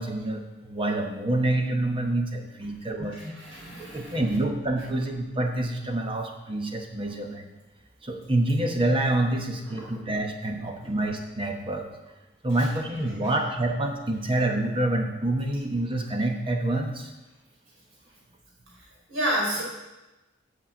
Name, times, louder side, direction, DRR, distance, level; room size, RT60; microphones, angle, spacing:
voice 1, 0.0-3.4 3.8-7.5 8.0-11.9 12.4-17.1, right 1 dB, 25° right, 3 dB, 1.2 m, -27 dB
voice 2, 3.1-4.2 9.8-9.9 12.6-12.7 13.2-13.3 19.1-19.6, right 1 dB, 85° right, -4 dB, 4.1 m, -31 dB
8.7 x 5.9 x 7.6 m, 1.1 s
head